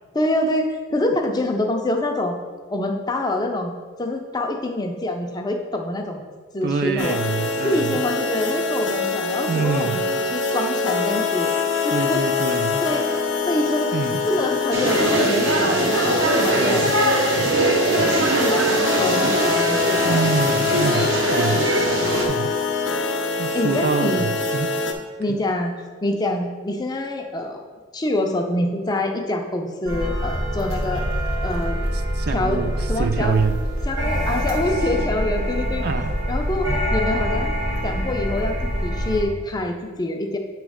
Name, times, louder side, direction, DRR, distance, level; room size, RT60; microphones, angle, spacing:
voice 1, 0.1-2.4 2.7-3.7 4.0-6.2 6.5-7.2 7.6-11.5 11.8-12.2 12.8-13.0 13.5-13.9 14.3-16.8 17.7-20.2 23.5-24.3 25.2-27.7 27.9-31.0 31.4-31.8 32.3-32.6 32.9-33.4 33.8-35.8 36.3-37.5 37.8-40.4, left 1 dB, 20° left, 3 dB, 0.4 m, -25 dB
voice 2, 6.6-8.0 9.5-10.1 11.9-12.8 13.9-14.2 16.6-17.0 20.0-21.7 22.3-22.6 23.4-24.8 25.3-25.4 32.2-33.6 35.8-36.1, right 5 dB, 50° right, 9 dB, 0.3 m, -25 dB
sound 1, 7.0-24.9, left 4 dB, 70° left, 0.7 m, -24 dB
sound 2, 14.7-22.3, right 2 dB, 65° right, 0.9 m, -21 dB
sound 3, 29.9-39.2, equal, 85° right, 1.5 m, -25 dB
7.8 x 3.1 x 4.9 m, 1.5 s
head